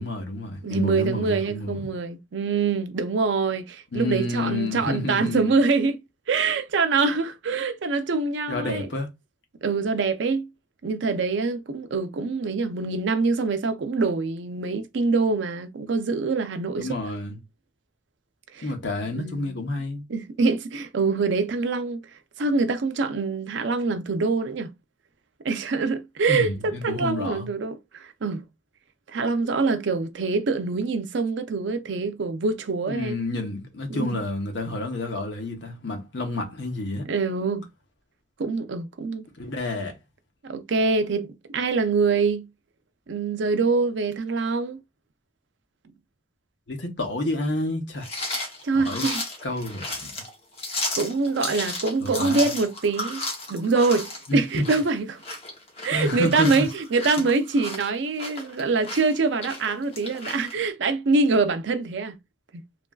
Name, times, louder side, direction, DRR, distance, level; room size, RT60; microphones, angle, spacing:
voice 1, 0.0-1.9 3.9-5.5 8.5-9.1 16.8-17.4 18.6-20.0 26.3-27.5 32.9-37.1 39.4-40.0 46.7-48.1 48.7-49.1 49.4-50.1 52.0-52.4 54.3-54.4 55.9-56.7, left 2 dB, 65° left, 0.8 m, -29 dB
voice 2, 0.6-6.0 6.3-8.9 9.6-10.5 10.8-17.2 18.5-18.7 19.1-19.6 20.1-22.0 22.4-24.7 25.4-28.5 29.1-33.2 33.9-34.2 37.0-37.7 38.4-39.3 40.4-42.4 43.1-44.8 48.6-49.2 50.9-53.2 53.5-55.2 55.8-62.2, right 4 dB, 70° right, 0.5 m, -25 dB
sound 1, 48.0-60.5, left 2 dB, 30° left, 0.8 m, -34 dB
3.1 x 2.4 x 2.3 m
head